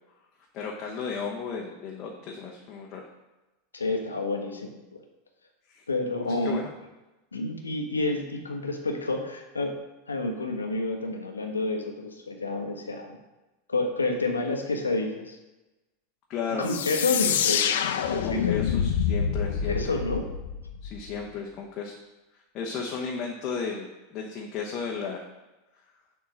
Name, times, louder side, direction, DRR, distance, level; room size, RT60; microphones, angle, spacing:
voice 1, 0.5-3.0 5.7-5.8 6.4-6.7 16.3-16.6 18.2-19.8 20.8-22.0 22.5-25.2, left 6 dB, 35° left, -1 dB, 1.0 m, -34 dB
voice 2, 3.7-5.0 5.9-6.7 7.3-9.7 10.1-13.2 13.7-15.4 16.6-17.8 18.1-18.6 19.7-20.2, left 2 dB, 75° left, 3 dB, 1.1 m, -29 dB
sound 1, 16.6-21.2, left 8 dB, 60° left, 0.5 m, -27 dB
7.1 x 3.7 x 6.0 m, 1.1 s
figure-of-eight pair, 85°, 0 cm